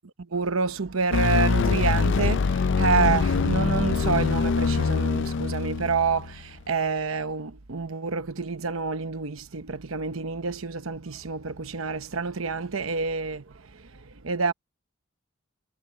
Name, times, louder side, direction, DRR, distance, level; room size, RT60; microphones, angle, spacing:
voice 1, 0.3-13.4 14.2-14.5, right 4 dB, 75° right, 0.9 m, -28 dB
sound 1, 1.1-6.4, left 5 dB, 60° left, 0.4 m, -24 dB
head